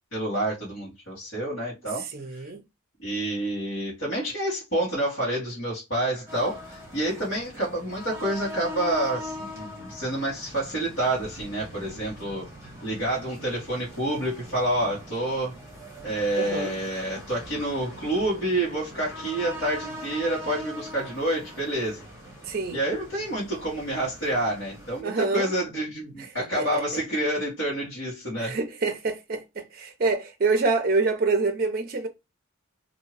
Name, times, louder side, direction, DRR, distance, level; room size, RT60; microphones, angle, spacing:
voice 1, 0.1-2.0 2.3-2.5 3.0-15.5 16.0-22.0 22.7-28.6, right 1 dB, 60° left, 1.5 m, -28 dB
voice 2, 2.1-2.6 16.4-16.7 22.4-22.8 25.0-25.5 26.2-26.3 26.6-26.8 28.4-29.4 29.7-32.1, right 3 dB, 45° right, 0.5 m, -26 dB
sound 1, 6.3-25.0, equal, 15° right, 1.1 m, -42 dB
2.7 x 2.7 x 3.0 m
head